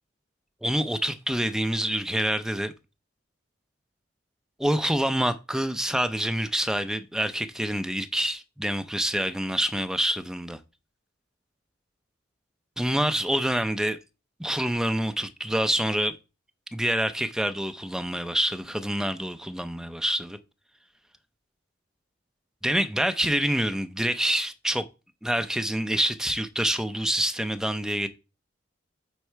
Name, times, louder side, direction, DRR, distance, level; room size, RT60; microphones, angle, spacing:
voice 1, 0.6-2.7 4.6-10.6 12.8-14.0 14.4-16.2 16.7-20.4 22.6-24.8 25.2-28.1, right 1 dB, 5° right, 0.5 m, -26 dB
8.1 x 4.1 x 4.5 m
head